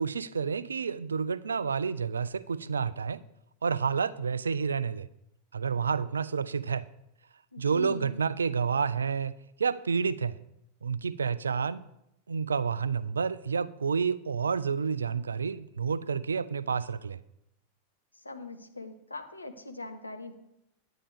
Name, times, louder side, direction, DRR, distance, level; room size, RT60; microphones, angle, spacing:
voice 1, 0.0-3.2 3.6-5.1 5.5-6.9 7.6-10.4 10.8-11.8 12.3-17.2, right 6 dB, 70° right, 18 dB, 0.3 m, -29 dB
voice 2, 7.5-8.2 18.2-20.3, left 2 dB, 80° left, 7 dB, 0.9 m, -42 dB
9.9 x 9.8 x 3.5 m, 0.82 s
figure-of-eight pair, 90°, 0 cm